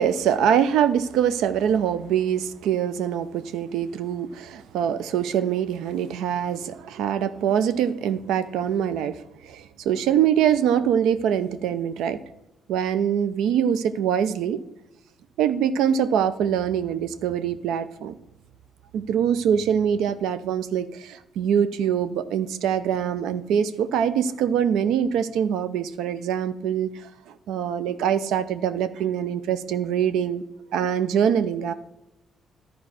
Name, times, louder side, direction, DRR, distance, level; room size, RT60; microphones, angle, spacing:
voice 1, 0.0-12.2 12.7-14.6 15.4-18.2 18.9-30.4 30.7-31.7, right 8 dB, 85° right, 13 dB, 0.6 m, -24 dB
11.0 x 4.7 x 6.3 m, 0.89 s
cardioid pair, 90°, 0 cm